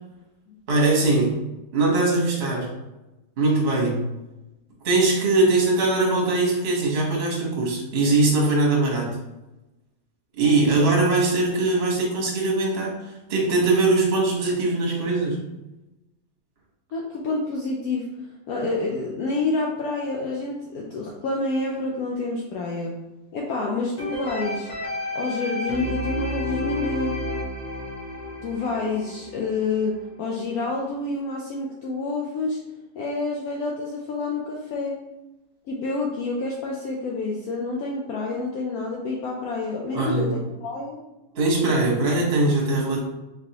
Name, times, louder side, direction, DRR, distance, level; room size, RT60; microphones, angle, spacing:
voice 1, 0.7-1.4 1.7-2.7 3.4-4.1 4.8-9.2 10.3-15.4 39.9-40.3 41.3-43.0, right 2 dB, 40° right, -2 dB, 1.0 m, -21 dB
voice 2, 16.9-18.1 18.5-22.9 23.3-24.7 25.1-27.2 28.4-32.6 32.9-35.0 35.7-41.0, left 3 dB, 80° left, -2 dB, 0.8 m, -28 dB
sound 1, 24.0-30.0 30.5-30.6, left 1 dB, 50° left, 0.4 m, -31 dB
4.0 x 3.3 x 2.8 m, 1.0 s
omnidirectional pair, 2.1 m